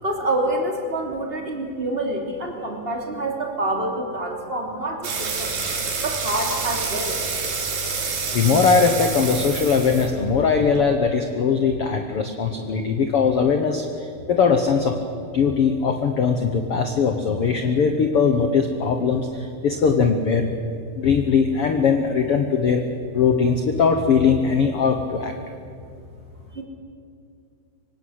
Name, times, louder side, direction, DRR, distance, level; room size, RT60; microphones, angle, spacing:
voice 1, 0.0-5.5 6.0-7.2 26.5-26.6, right 1 dB, 15° right, 1 dB, 2.7 m, -27 dB
sound 1, 5.0-10.8, right 4 dB, 85° right, 4.8 m, -28 dB
voice 2, 8.3-13.8 14.3-14.9 15.3-19.3 19.6-20.5 21.0-22.8 23.1-25.3, left 5 dB, 75° left, 6 dB, 1.3 m, -20 dB
25.5 x 18.0 x 8.1 m, 2.4 s
omnidirectional pair, 4.4 m